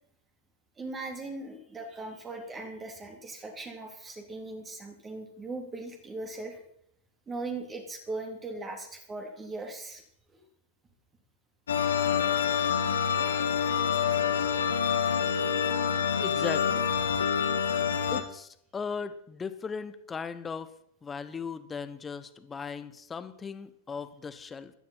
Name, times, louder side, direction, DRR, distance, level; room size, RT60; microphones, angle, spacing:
voice 1, 0.8-6.6 7.3-10.0 10.3-10.4 12.3-12.5 13.2-13.4 14.4-14.9, right 2 dB, 20° right, 3 dB, 3.3 m, -39 dB
sound 1, 11.7-18.2, left 7 dB, 70° left, 2.0 m, -27 dB
voice 2, 16.2-16.9 18.1-20.7 21.0-24.7, left 5 dB, 15° left, 12 dB, 1.2 m, -37 dB
16.0 x 13.0 x 5.7 m, 0.69 s
figure-of-eight pair, 95°, 0 cm